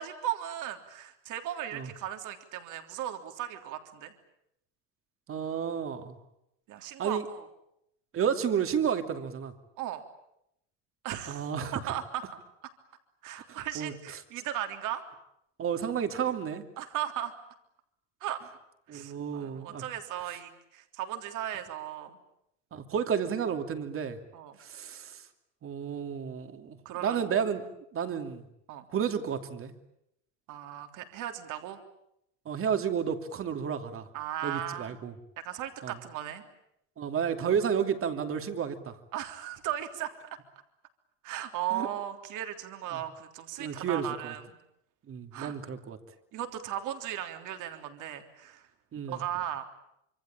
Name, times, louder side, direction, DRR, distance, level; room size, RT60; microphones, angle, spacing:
voice 1, 0.0-4.1 6.7-7.5 9.8-10.0 11.0-11.4 11.7-12.2 13.2-15.0 16.8-17.3 18.2-18.4 18.9-22.2 24.3-24.6 26.9-27.2 28.7-28.9 30.5-31.8 34.1-35.0 35.4-36.4 39.1-40.1 41.2-44.6 45.3-45.6 46.3-48.7 49.1-49.6, right 11 dB, 55° right, 6 dB, 3.5 m, -36 dB
voice 2, 5.3-6.2 7.0-7.2 8.1-9.5 11.3-11.7 13.5-14.2 15.6-16.6 18.9-19.8 22.7-24.2 24.6-25.2 25.6-27.6 27.9-28.4 28.9-29.7 32.4-34.1 34.4-35.1 35.8-35.9 37.0-38.9 41.7-41.9 42.9-43.0 43.6-44.3 45.1-46.0 48.9-49.2, right 7 dB, 35° right, 7 dB, 2.8 m, -31 dB
26.5 x 24.5 x 8.9 m, 0.78 s
supercardioid pair, 120°, 37 cm